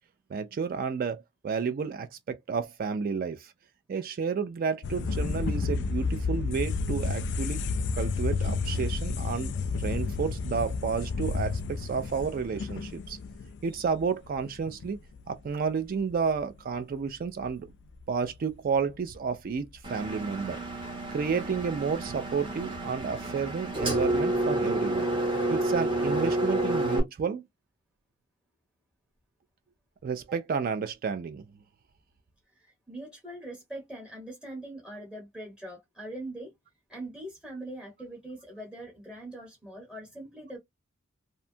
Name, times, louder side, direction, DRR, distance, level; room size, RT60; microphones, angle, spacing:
voice 1, 0.3-3.5 3.9-7.6 7.9-13.2 13.6-15.0 15.3-17.7 18.1-20.6 21.1-25.1 25.5-27.5 30.0-31.4, right 5 dB, 45° right, 0.3 m, -31 dB
sound 1, 4.8-15.3 15.7-15.8 16.0-16.8 17.4-18.0 18.3-18.4 18.9-19.0 19.6-19.7 20.5-20.7 21.3-21.4 21.5-21.6 22.0-22.5 22.8-22.9 23.3-23.4 23.7-23.8, left 4 dB, 60° left, 0.3 m, -31 dB
Engine, 19.8-27.0, right 1 dB, 25° right, 0.9 m, -29 dB
voice 2, 32.5-36.5 36.9-40.6, right 1 dB, 5° right, 1.0 m, -42 dB
2.6 x 2.2 x 2.6 m
head